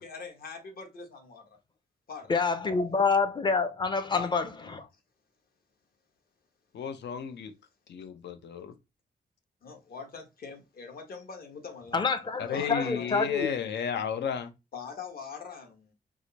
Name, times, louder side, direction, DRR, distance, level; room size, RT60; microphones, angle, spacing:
voice 1, 0.0-1.6 2.1-2.4 4.1-4.4 9.6-12.0 12.5-13.2 14.7-15.9, left 5 dB, 60° left, 1.3 m, -42 dB
voice 2, 2.3-4.9 11.9-13.5, left 4 dB, 25° left, 0.5 m, -27 dB
voice 3, 6.7-7.5 7.9-8.7 12.4-14.5, left 7 dB, 85° left, 0.7 m, -33 dB
4.8 x 2.1 x 4.0 m
wide cardioid pair, 170°, 17 cm